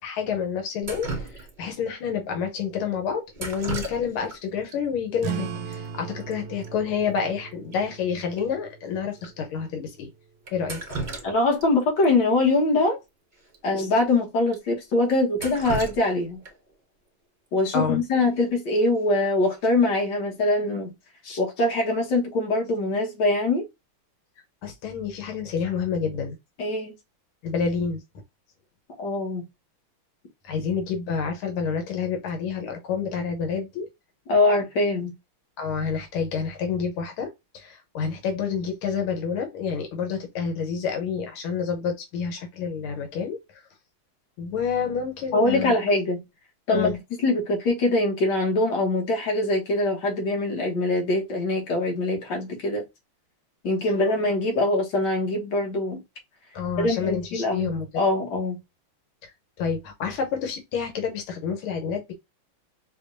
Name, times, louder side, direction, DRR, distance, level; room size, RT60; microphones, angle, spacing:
voice 1, 0.0-10.1 10.5-10.8 17.7-18.0 24.6-26.4 27.4-28.0 30.4-33.9 35.6-43.6 44.4-45.8 46.7-47.0 56.5-57.9 59.2-59.3 59.6-62.1, left 6 dB, 90° left, 1.7 m, -29 dB
Drip, 0.8-1.8 3.3-4.4 4.7-4.8 5.7-5.8 6.1-6.3 6.6-6.7 7.2-7.3 7.7-7.8 8.4-8.5 9.2-9.3 10.5-11.7 12.0-12.1 13.5-13.6 14.0-14.1 14.5-14.6 15.1-16.7 18.7-19.0 19.4-19.8, right 3 dB, 55° right, 0.5 m, -35 dB
sound 1, 5.2-10.3, right 7 dB, 75° right, 1.2 m, -38 dB
voice 2, 11.2-13.0 13.6-16.4 17.5-20.9 21.2-23.6 26.6-26.9 29.0-29.4 34.3-35.1 45.3-46.2 46.7-46.9 47.2-52.8 53.6-56.0 56.8-58.6, left 2 dB, 60° left, 1.8 m, -23 dB
5.0 x 2.3 x 2.6 m
omnidirectional pair, 2.3 m